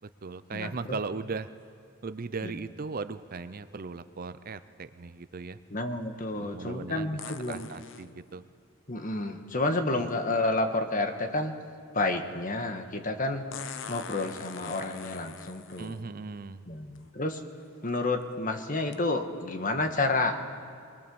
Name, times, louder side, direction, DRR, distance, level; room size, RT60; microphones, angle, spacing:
voice 1, 0.0-1.5 2.0-5.6 6.3-7.2 7.4-8.5 15.8-16.7, right 4 dB, 45° right, 13 dB, 0.6 m, -38 dB
voice 2, 0.5-1.0 2.4-2.5 5.7-7.7 8.9-11.5 11.9-13.4 13.9-16.0 16.7-17.4 17.8-20.5, left 2 dB, 40° left, 6 dB, 1.5 m, -30 dB
sound 1, 7.2-8.1 10.1-10.2 13.5-16.0 16.9-17.0 17.7-18.0 18.9-19.0, left 6 dB, 65° left, 0.9 m, -43 dB
23.0 x 20.0 x 7.1 m, 2.3 s
head